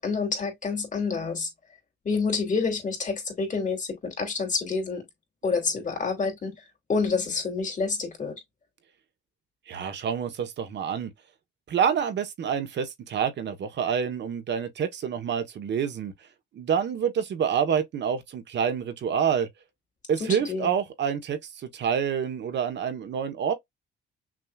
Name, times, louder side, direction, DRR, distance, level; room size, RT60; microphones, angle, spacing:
voice 1, 0.0-1.5 2.0-5.0 5.4-6.6 6.9-8.3 20.2-20.7, left 4 dB, 40° left, 2.9 m, -28 dB
voice 2, 9.7-11.1 11.7-16.1 16.5-19.5 20.1-23.5, right 7 dB, 65° right, 1.1 m, -27 dB
6.1 x 2.8 x 2.4 m
cardioid pair, 90°, 20 cm